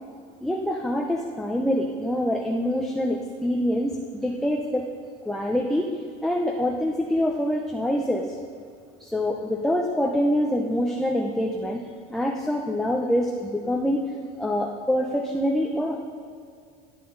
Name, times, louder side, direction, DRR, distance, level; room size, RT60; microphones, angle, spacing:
voice 1, 0.4-4.9 5.2-5.9 6.2-8.3 9.0-11.8 12.1-14.0 14.4-16.0, equal, ahead, 0 dB, 0.9 m, -25 dB
18.5 x 9.9 x 4.1 m, 2.3 s
cardioid pair, 130°, 19 cm